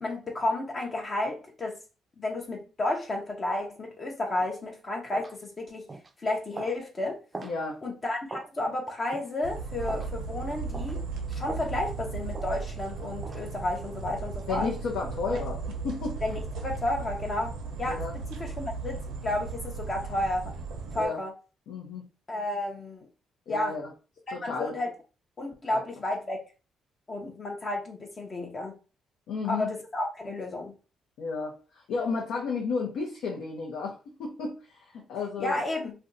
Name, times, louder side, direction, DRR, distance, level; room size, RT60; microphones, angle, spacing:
voice 1, 0.0-1.8 2.2-5.9 6.2-7.2 7.8-14.7 15.3-15.4 16.2-18.0 18.3-20.5 20.9-21.3 22.3-23.1 23.5-23.8 24.4-24.9 25.4-26.4 27.1-28.8 29.5-30.7 35.4-35.9, left 2 dB, 35° left, 0 dB, 0.6 m, -32 dB
sound 1, 4.4-4.5 5.1-5.4 5.9-6.1 6.5-6.8 7.3-7.6 8.3-8.5 9.1-9.3 9.9-10.1 10.7-11.0 11.5-11.7 12.3-12.5 13.2-13.4, right 3 dB, 25° right, 0.4 m, -40 dB
voice 2, 7.4-7.8 14.5-16.2 17.8-18.1 20.9-21.2 21.7-22.0 23.5-23.9 24.3-24.7 25.7-25.8 29.3-29.7 31.2-35.6, left 4 dB, 85° left, -1 dB, 0.6 m, -33 dB
sound 2, 9.4-21.0, right 4 dB, 90° right, 0.6 m, -36 dB
2.6 x 2.2 x 3.7 m, 0.34 s
cardioid pair, 90°, 0 cm